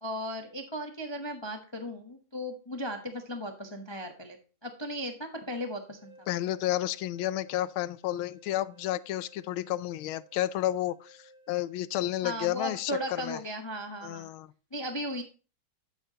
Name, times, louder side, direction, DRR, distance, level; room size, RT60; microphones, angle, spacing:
voice 1, 0.0-4.4 4.6-6.3 12.2-14.3 14.7-15.2, equal, 40° left, 0.3 m, -36 dB
sound 1, 5.7-13.3, right 2 dB, 10° right, 3.8 m, -58 dB
voice 2, 6.3-13.4 14.0-14.5, left 14 dB, 80° left, 1.4 m, -31 dB
12.5 x 8.0 x 2.8 m
omnidirectional pair, 2.3 m